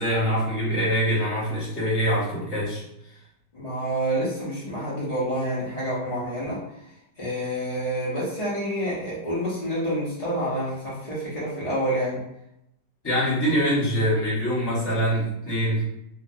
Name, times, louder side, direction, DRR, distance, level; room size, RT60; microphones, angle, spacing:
voice 1, 0.0-2.8 13.0-15.9, equal, 20° left, -9 dB, 0.8 m, -24 dB
voice 2, 3.5-6.6 7.2-12.2, equal, 80° left, -9 dB, 0.3 m, -28 dB
2.8 x 2.3 x 2.6 m, 0.81 s
omnidirectional pair, 1.9 m